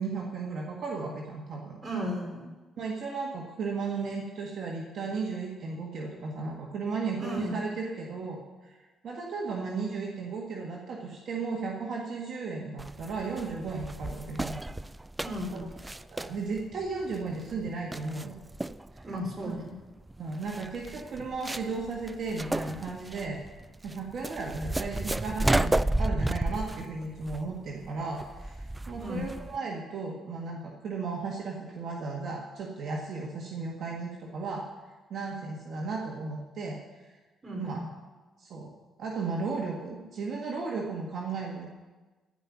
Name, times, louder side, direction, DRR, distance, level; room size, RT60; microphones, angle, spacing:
voice 1, 0.0-1.8 2.8-8.8 9.0-14.5 15.5-15.6 16.1-18.4 19.4-19.6 20.2-23.4 23.8-34.6 35.1-36.8 37.6-37.9 38.4-38.7 39.0-41.7, right 4 dB, 60° right, -1 dB, 1.7 m, -35 dB
voice 2, 1.8-2.5 7.2-7.6 15.2-15.7 19.0-19.7 29.0-29.2 37.4-37.9, equal, 30° right, -1 dB, 4.2 m, -35 dB
sound 1, 12.8-29.6, right 1 dB, 15° right, 0.3 m, -33 dB
15.0 x 5.4 x 9.3 m, 1.3 s
cardioid pair, 90°, 0 cm